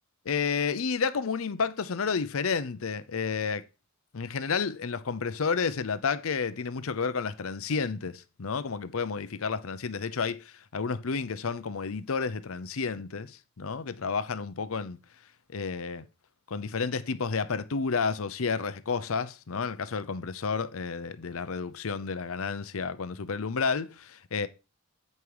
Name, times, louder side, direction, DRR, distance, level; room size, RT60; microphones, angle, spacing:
voice 1, 0.3-3.6 4.1-15.0 15.5-16.1 16.5-24.5, left 5 dB, 75° left, 0.6 m, -31 dB
8.3 x 5.4 x 4.8 m
head